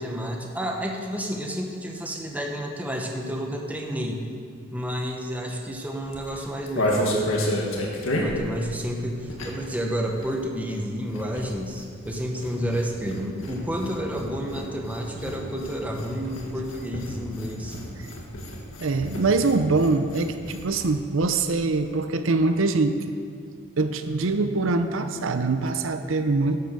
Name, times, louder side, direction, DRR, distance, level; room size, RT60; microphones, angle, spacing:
voice 1, 0.0-4.2 4.7-7.7 8.1-17.8, equal, 10° right, 1 dB, 1.1 m, -30 dB
sound 1, 6.0-9.8 10.0-20.9 21.2-21.3 21.5-21.8, left 1 dB, 85° left, 2.0 m, -32 dB
voice 2, 18.8-23.1 23.8-26.6, right 3 dB, 80° right, 9 dB, 0.7 m, -23 dB
11.5 x 8.2 x 6.8 m, 2.2 s
head